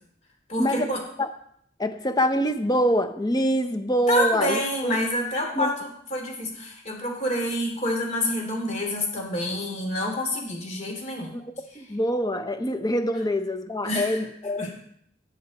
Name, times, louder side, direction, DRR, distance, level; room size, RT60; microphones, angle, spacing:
voice 1, 0.5-1.0 4.1-11.3 13.8-14.2 14.6-14.7, left 1 dB, 40° left, 2 dB, 3.0 m, -27 dB
voice 2, 1.8-4.9 5.5-5.7 11.3-14.7, equal, 20° left, 8 dB, 0.8 m, -25 dB
18.0 x 6.7 x 4.2 m, 0.68 s
head